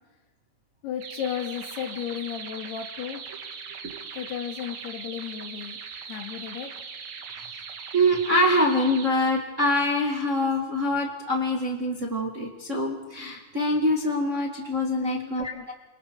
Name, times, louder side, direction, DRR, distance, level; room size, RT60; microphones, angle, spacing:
voice 1, 0.8-3.2 4.1-6.7 15.0-15.7, left 9 dB, 80° left, 4 dB, 4.0 m, -34 dB
sound 1, 1.0-9.1, right 6 dB, 60° right, 2.8 m, -40 dB
voice 2, 7.9-15.7, left 1 dB, 25° right, 0 dB, 1.7 m, -25 dB
29.5 x 26.0 x 4.8 m, 1.2 s
omnidirectional pair, 4.6 m